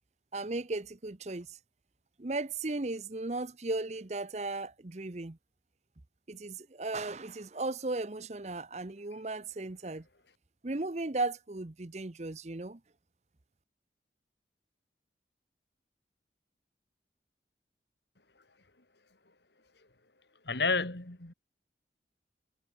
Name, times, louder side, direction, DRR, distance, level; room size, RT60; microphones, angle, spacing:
voice 1, 0.3-1.6 2.2-5.4 6.3-10.0 10.6-12.8, right 2 dB, 40° right, 0.8 m, -36 dB
voice 2, 20.4-21.3, left 4 dB, 75° left, 2.9 m, -30 dB
head